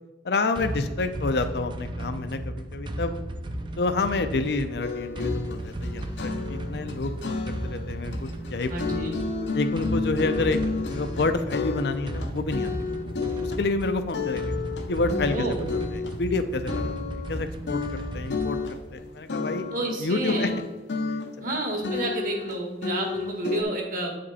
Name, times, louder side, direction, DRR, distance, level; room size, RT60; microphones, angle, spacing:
voice 1, 0.2-3.2 3.8-8.7 9.5-10.6 10.8-14.5 14.9-17.8 18.1-18.6 18.9-19.7 20.0-20.5 21.1-21.6, left 3 dB, 65° left, 8 dB, 0.5 m, -29 dB
sound 1, 0.6-19.0, right 1 dB, 25° right, 0.5 m, -35 dB
sound 2, 4.8-16.4 16.7-17.4 17.7-20.0 20.3-21.6 21.8-23.6, left 4 dB, 85° left, 0.9 m, -31 dB
voice 2, 8.7-9.2 15.3-15.7 19.7-20.5 21.4-24.2, right 2 dB, 50° right, 2 dB, 1.7 m, -30 dB
8.8 x 5.2 x 4.1 m, 1.2 s
head